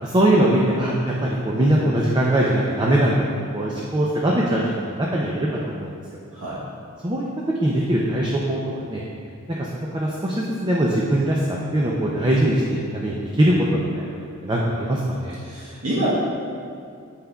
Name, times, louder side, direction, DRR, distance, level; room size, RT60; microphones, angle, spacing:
voice 1, 0.0-3.3 3.5-5.9 7.0-7.3 7.6-8.6 8.8-9.0 9.6-9.7 9.9-14.1 14.4-15.4, right 1 dB, 20° right, -3 dB, 0.5 m, -21 dB
voice 2, 15.4-16.1, right 1 dB, 65° right, -9 dB, 1.1 m, -27 dB
8.0 x 5.7 x 2.3 m, 2.3 s
head